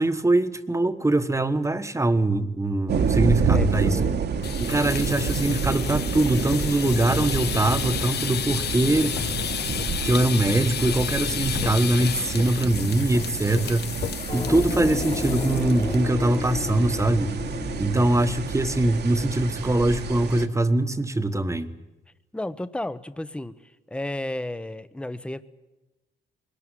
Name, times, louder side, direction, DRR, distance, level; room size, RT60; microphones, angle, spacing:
voice 1, 0.0-4.0 4.6-9.2 10.0-14.0 14.3-17.4 17.8-21.7, right 2 dB, 15° right, 1.3 m, -23 dB
sound 1, 2.9-20.5, right 5 dB, 55° right, 1.7 m, -29 dB
voice 2, 3.4-4.1 12.1-12.3 22.3-25.4, left 1 dB, 5° left, 0.9 m, -33 dB
sound 2, 4.3-16.0 16.3-16.6 16.9-17.0 17.3-17.7, left 9 dB, 55° left, 0.8 m, -32 dB
sound 3, 14.3-20.1, left 3 dB, 30° left, 1.8 m, -33 dB
21.0 x 18.5 x 10.0 m
cardioid pair, 90°, 20 cm